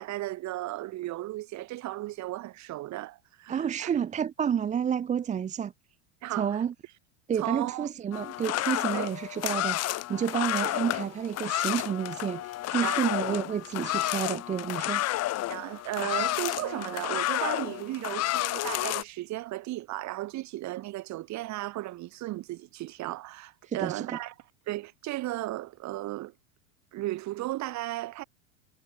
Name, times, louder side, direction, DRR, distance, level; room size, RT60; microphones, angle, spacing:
voice 1, 0.0-3.9 6.2-6.6 7.4-7.9 8.9-9.1 12.8-13.0 15.5-24.3 24.7-26.3 26.9-28.2, right 17 dB, 45° right, 4.8 m, -35 dB
voice 2, 3.5-5.7 6.3-6.7 7.3-15.0 23.6-24.2, right 8 dB, 20° right, 0.7 m, -30 dB
sound 1, 8.1-19.0, left 15 dB, 40° left, 1.8 m, -31 dB
supercardioid pair, 120°, 39 cm